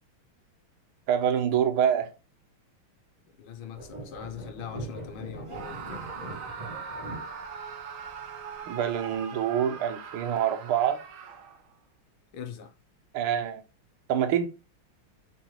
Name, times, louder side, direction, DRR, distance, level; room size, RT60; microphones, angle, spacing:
voice 1, 1.1-2.1 8.7-11.0 13.1-13.6 14.1-14.5, right 9 dB, 85° right, 1.6 m, -26 dB
voice 2, 3.4-6.1 12.3-12.7, left 8 dB, 80° left, 1.6 m, -41 dB
sound 1, 3.8-9.1, right 2 dB, 25° right, 1.3 m, -42 dB
Screaming, 5.5-11.7, right 5 dB, 70° right, 0.7 m, -41 dB
4.1 x 3.0 x 3.8 m
omnidirectional pair, 2.3 m